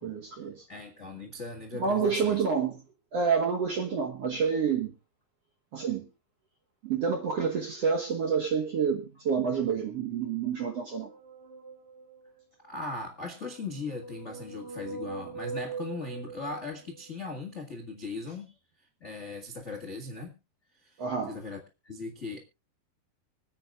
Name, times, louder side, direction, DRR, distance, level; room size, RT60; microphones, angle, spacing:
voice 1, 0.0-0.7 1.7-2.8 3.1-4.9 5.7-6.1 6.8-11.1 21.0-21.4, right 6 dB, 60° right, 1.7 m, -28 dB
voice 2, 0.7-2.4 12.6-18.5 18.8-20.4 20.7-22.4, left 3 dB, 55° left, 0.7 m, -39 dB
sound 1, 10.8-12.4 13.3-17.2, right 4 dB, 90° right, 4.0 m, -42 dB
25.5 x 9.1 x 2.4 m
omnidirectional pair, 4.6 m